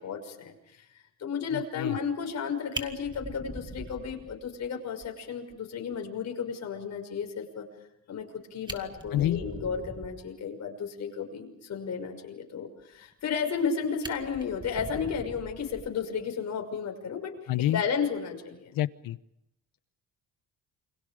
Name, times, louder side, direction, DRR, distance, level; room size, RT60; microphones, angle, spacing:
voice 1, 0.0-0.8 1.2-7.7 8.1-18.7, left 6 dB, 55° left, 3 dB, 6.0 m, -33 dB
voice 2, 1.5-2.0 9.1-9.4 17.5-17.8 18.7-19.2, left 13 dB, 80° left, 14 dB, 1.1 m, -28 dB
Fire, 2.3-2.4 2.7-4.7 5.0-5.1 5.5-5.6 5.9-6.0 8.2-8.3 8.6-10.3 13.1-13.7 14.0-16.2 17.5-17.7, right 2 dB, 15° right, 2.0 m, -42 dB
29.0 x 26.0 x 5.0 m, 0.83 s
cardioid pair, 150°, 34 cm